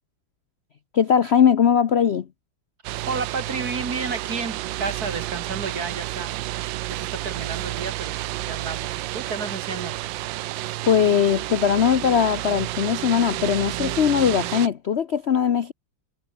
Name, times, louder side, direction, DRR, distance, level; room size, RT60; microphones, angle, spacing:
voice 1, 0.9-2.3 10.9-15.7, left 8 dB, 60° left, 0.6 m, -20 dB
sound 1, 2.8-14.7, right 16 dB, 75° right, 1.3 m, -30 dB
voice 2, 3.1-10.0, right 4 dB, 50° right, 3.2 m, -32 dB
omnidirectional pair, 2.2 m